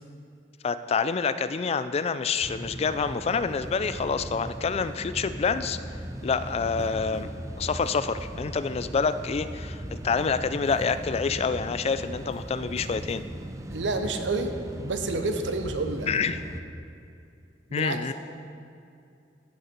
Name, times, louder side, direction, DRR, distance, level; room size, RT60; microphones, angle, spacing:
voice 1, 0.6-5.8 6.2-7.3 7.6-13.2 16.1-16.4 17.7-18.1, left 5 dB, 35° left, 13 dB, 0.3 m, -27 dB
sound 1, 2.4-16.6, right 1 dB, 20° right, 0.6 m, -38 dB
voice 2, 13.7-16.1 17.7-18.1, right 3 dB, 90° right, 7 dB, 0.8 m, -29 dB
15.0 x 6.5 x 4.4 m, 2.5 s
head